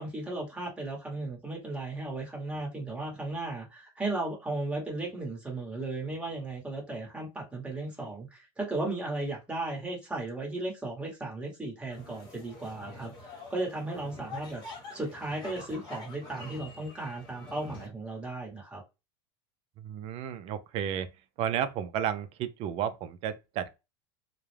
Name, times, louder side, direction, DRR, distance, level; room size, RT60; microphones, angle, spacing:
voice 1, 0.0-13.1 13.5-14.6 14.9-18.8, right 2 dB, 10° right, 1.0 m, -35 dB
sound 1, 11.9-17.9, left 2 dB, 30° left, 1.1 m, -46 dB
voice 2, 19.8-21.1 21.4-23.7, right 9 dB, 45° right, 0.4 m, -32 dB
2.3 x 2.1 x 3.1 m
supercardioid pair, 130°, 14 cm